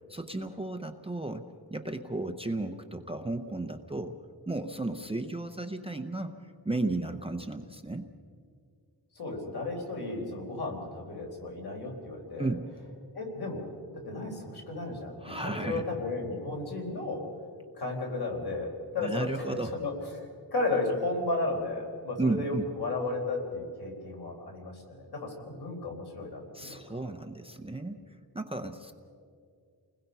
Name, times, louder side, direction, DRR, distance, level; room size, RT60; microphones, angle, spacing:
voice 1, 0.1-1.4 1.7-4.2 4.5-6.3 6.6-8.1 12.4-12.7 15.2-15.9 19.0-19.7 22.2-22.7 26.5-28.0 28.3-28.9, right 2 dB, 15° right, 5 dB, 0.7 m, -34 dB
voice 2, 9.1-12.5 13.1-13.7 14.0-17.2 17.8-27.0, left 2 dB, 65° left, 0 dB, 4.6 m, -34 dB
30.0 x 20.5 x 5.5 m, 2.3 s
wide cardioid pair, 180°, 42 cm